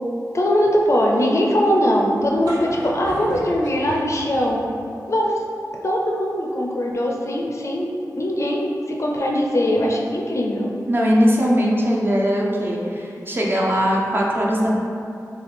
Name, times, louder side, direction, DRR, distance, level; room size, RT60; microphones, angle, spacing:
voice 1, 0.3-4.6 5.1-5.4 5.8-7.9 8.2-10.7, equal, 50° left, -1 dB, 0.4 m, -21 dB
sound 1, 2.2-4.8, equal, 85° right, 0.7 m, -34 dB
voice 2, 10.9-14.7, equal, 35° right, -4 dB, 0.6 m, -20 dB
4.0 x 2.3 x 3.3 m, 2.6 s
wide cardioid pair, 75°, 7 cm